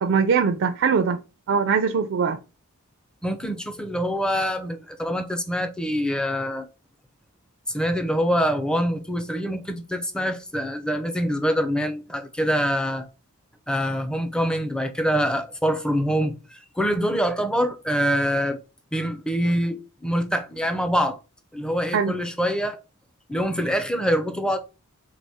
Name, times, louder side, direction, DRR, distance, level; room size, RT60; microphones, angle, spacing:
voice 1, 0.0-1.2 1.5-2.4 21.9-22.1, right 6 dB, 60° right, 0.4 m, -21 dB
voice 2, 3.2-6.7 7.7-13.1 13.7-18.6 18.9-21.2 21.5-22.8 23.3-24.6, equal, 5° left, 0.5 m, -25 dB
4.1 x 3.4 x 3.5 m
head